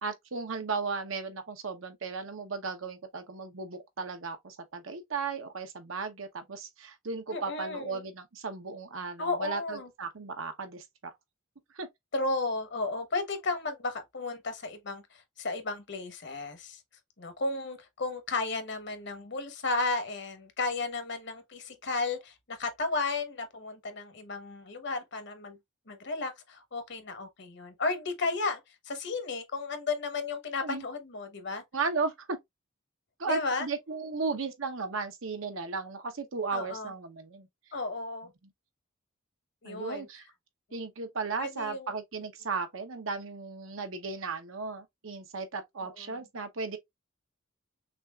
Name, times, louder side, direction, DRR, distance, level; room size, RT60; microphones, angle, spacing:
voice 1, 0.0-11.1 11.7-11.9 30.6-30.8 31.7-32.4 33.2-37.5 39.6-40.3 40.7-46.8, right 4 dB, 75° right, 0.9 m, -35 dB
voice 2, 7.3-8.0 9.2-9.9 12.1-15.0 15.4-16.8 17.2-25.6 25.9-28.6 28.9-31.6 33.3-33.7 36.5-36.9 37.7-38.3 39.6-40.1 41.4-41.9, left 3 dB, 60° left, 1.0 m, -33 dB
6.0 x 2.5 x 2.3 m
head